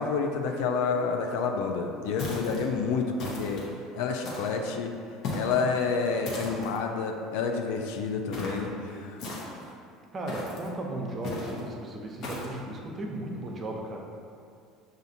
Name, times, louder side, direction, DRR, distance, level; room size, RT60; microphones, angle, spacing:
voice 1, 0.0-3.6 3.9-4.9 5.3-9.2, left 5 dB, 75° left, 3 dB, 0.3 m, -29 dB
sound 1, 2.2-2.7 3.2-3.7 4.2-4.6 5.2-5.6 6.2-6.8 8.3-8.7 9.2-9.7 10.3-10.7 11.2-11.6 12.2-12.6, left 2 dB, 60° left, 0.8 m, -36 dB
voice 2, 8.8-9.1 10.1-14.0, right 1 dB, 35° right, 0 dB, 0.6 m, -36 dB
5.5 x 2.5 x 2.7 m, 2.4 s
hypercardioid pair, 80°, 0 cm